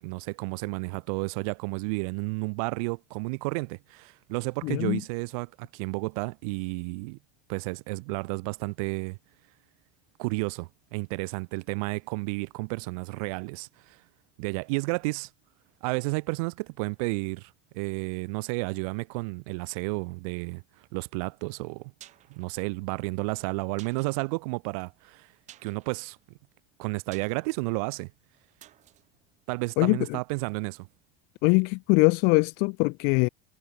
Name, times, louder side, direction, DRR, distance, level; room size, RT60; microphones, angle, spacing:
voice 1, 0.0-7.2 7.5-9.2 10.2-14.0 14.4-15.3 15.8-20.6 20.9-21.9 22.3-25.3 25.6-26.2 26.8-28.1 29.5-30.9, right 29 dB, 75° right, 1.6 m, -32 dB
voice 2, 4.6-5.0 29.8-30.0 31.4-33.3, left 32 dB, 60° left, 0.7 m, -22 dB
sound 1, 21.9-30.5 30.7-30.8, right 13 dB, 40° right, 6.1 m, -57 dB
cardioid pair, 155°, 19 cm